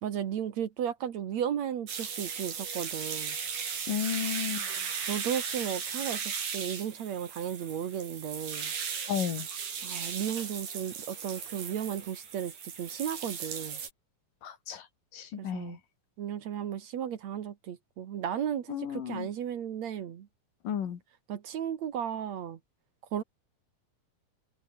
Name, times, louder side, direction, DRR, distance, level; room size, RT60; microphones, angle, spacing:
voice 1, 0.0-3.4 5.1-8.7 9.8-13.8 15.4-15.8 16.2-20.3 21.3-22.6 23.1-23.2, right 9 dB, 60° right, 2.5 m, -35 dB
sound 1, 1.9-13.9, right 6 dB, 80° right, 5.8 m, -37 dB
voice 2, 3.9-4.7 9.1-9.5 14.4-14.8 15.1-15.8 18.7-19.3 20.6-21.0, left 8 dB, 75° left, 4.0 m, -33 dB
omnidirectional pair, 3.9 m